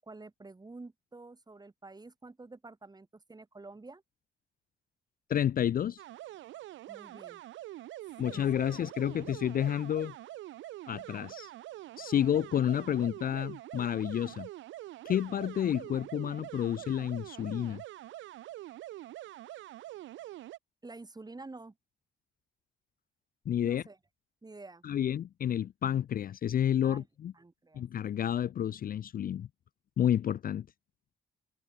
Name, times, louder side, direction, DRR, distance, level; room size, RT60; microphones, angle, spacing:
voice 1, 0.0-4.0 6.9-7.4 8.2-8.8 20.8-21.8 23.6-24.0 24.4-24.8 26.8-27.1 27.3-27.8, right 3 dB, 20° right, 4.0 m, -49 dB
voice 2, 5.3-6.0 8.2-10.1 10.9-11.5 12.0-14.5 15.0-17.8 23.5-23.8 24.8-27.3 27.7-29.5 30.0-30.7, left 10 dB, 45° left, 0.5 m, -30 dB
sound 1, 6.0-20.6, right 15 dB, 75° right, 0.6 m, -45 dB
cardioid pair, 90°, 20 cm